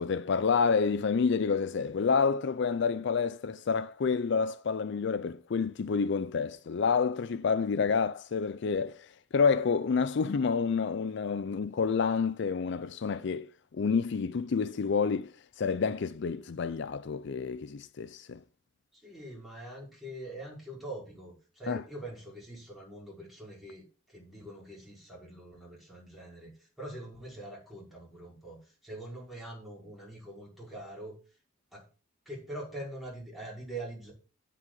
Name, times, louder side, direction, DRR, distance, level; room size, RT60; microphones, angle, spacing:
voice 1, 0.0-18.4 21.7-21.8, left 5 dB, 65° left, 0.4 m, -29 dB
voice 2, 18.9-26.5 26.8-31.1 31.7-31.8 32.2-34.1, right 1 dB, ahead, 5.1 m, -44 dB
16.0 x 5.4 x 3.9 m
head